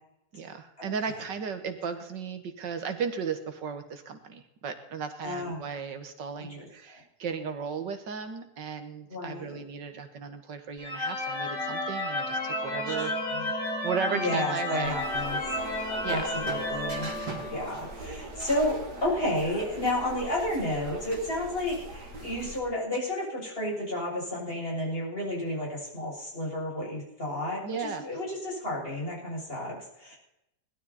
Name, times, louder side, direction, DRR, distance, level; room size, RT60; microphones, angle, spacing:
voice 1, 0.3-13.1 13.4-13.5 13.8-15.0 15.7-16.3 27.6-28.1, right 6 dB, 85° right, 8 dB, 2.1 m, -35 dB
voice 2, 5.2-5.6 6.4-6.7 9.1-9.6 12.8-13.5 14.1-15.4 16.0-17.1 17.5-30.2, left 1 dB, 30° left, -5 dB, 7.4 m, -32 dB
sound 1, 10.8-17.8, left 1 dB, 75° left, 5.8 m, -32 dB
sound 2, 14.8-22.6, right 2 dB, 65° right, 3.2 m, -41 dB
19.5 x 12.5 x 4.2 m, 0.83 s
omnidirectional pair, 1.9 m